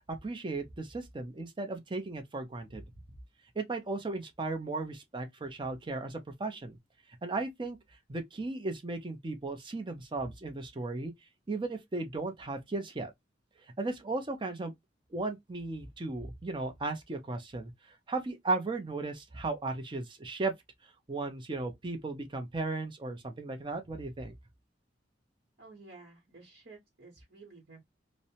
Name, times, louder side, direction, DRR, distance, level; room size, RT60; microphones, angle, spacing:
voice 1, 0.1-2.8 3.6-6.8 7.2-7.8 8.1-11.1 11.5-13.1 13.8-14.7 15.1-17.7 18.1-20.5 21.1-24.3, right 3 dB, 25° right, 0.5 m, -36 dB
voice 2, 25.6-27.8, right 3 dB, 60° right, 1.0 m, -53 dB
2.7 x 2.1 x 2.7 m
head